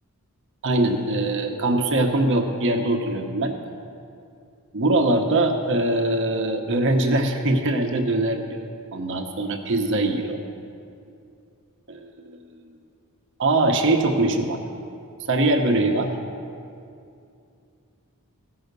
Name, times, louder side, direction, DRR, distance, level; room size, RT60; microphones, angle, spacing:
voice 1, 0.6-3.5 4.7-8.6 8.9-10.4 11.9-12.4 13.4-14.6 15.3-16.1, right 2 dB, 55° right, 4 dB, 0.8 m, -22 dB
15.5 x 5.6 x 6.6 m, 2.5 s
head